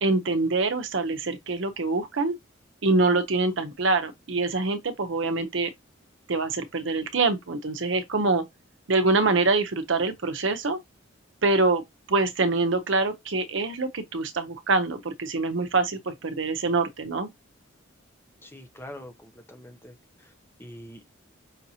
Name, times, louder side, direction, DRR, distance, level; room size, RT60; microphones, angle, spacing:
voice 1, 0.0-2.4 2.8-5.7 6.3-8.4 8.9-10.8 11.4-11.8 12.1-17.3, right 3 dB, 65° right, 0.7 m, -25 dB
voice 2, 18.4-20.3 20.6-21.1, left 1 dB, 10° left, 0.7 m, -44 dB
5.7 x 2.8 x 2.8 m
head